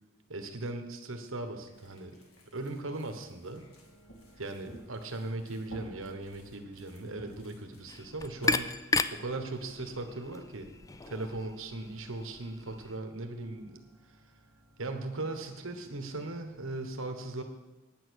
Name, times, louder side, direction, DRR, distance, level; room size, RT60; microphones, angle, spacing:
voice 1, 0.3-2.2 2.5-3.7 4.4-8.8 9.1-10.7 11.1-14.2 14.8-17.4, right 2 dB, 70° right, 6 dB, 1.2 m, -38 dB
sound 1, 1.6-8.6, equal, 85° left, 2.2 m, -52 dB
sound 2, 3.5-16.9, equal, 50° left, 4.3 m, -62 dB
sound 3, 7.9-13.0, left 3 dB, 15° left, 0.3 m, -35 dB
9.4 x 8.9 x 6.4 m, 1.1 s
head